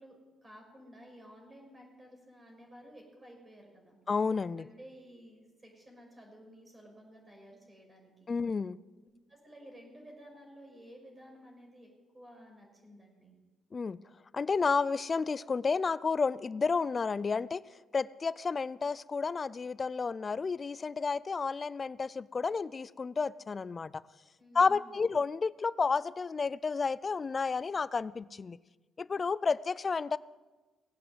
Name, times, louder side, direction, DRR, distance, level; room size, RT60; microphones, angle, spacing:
voice 1, 0.0-4.0 4.6-8.4 9.3-11.9 12.1-13.4 24.4-25.1, equal, 20° right, 1 dB, 5.7 m, -54 dB
voice 2, 4.1-4.7 8.3-8.8 13.7-14.0 14.3-17.6 17.9-23.9 24.5-28.6 29.0-30.2, left 4 dB, 35° left, 19 dB, 0.4 m, -31 dB
18.0 x 8.7 x 7.9 m, 1.2 s
cardioid pair, 90°, 0 cm